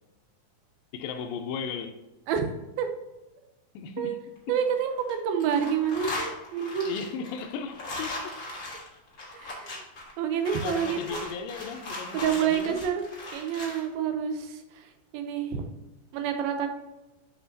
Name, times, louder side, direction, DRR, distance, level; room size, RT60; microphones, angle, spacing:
voice 1, 0.9-2.0 3.7-4.2 6.8-8.4 10.5-12.8, left 6 dB, 80° left, 2.2 m, -36 dB
sound 1, 4.4-5.1 5.4-13.8, left 2 dB, 55° left, 0.8 m, -38 dB
voice 2, 4.5-7.0 9.3-9.8 10.2-11.2 12.1-15.6 16.1-16.7, right 8 dB, 85° right, 2.6 m, -28 dB
7.0 x 6.4 x 2.7 m
omnidirectional pair, 4.2 m